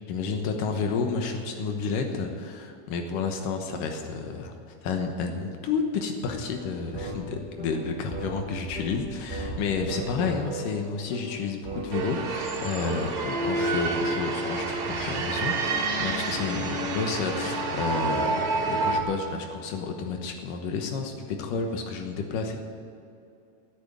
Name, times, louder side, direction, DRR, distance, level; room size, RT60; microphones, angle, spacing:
voice 1, 0.1-22.6, left 5 dB, 85° left, 4 dB, 2.8 m, -31 dB
sound 1, 6.5-12.0, right 1 dB, 25° right, 1.1 m, -38 dB
sound 2, 11.9-19.0, right 3 dB, 50° right, 2.9 m, -28 dB
16.5 x 8.7 x 8.2 m, 2.6 s
omnidirectional pair, 3.7 m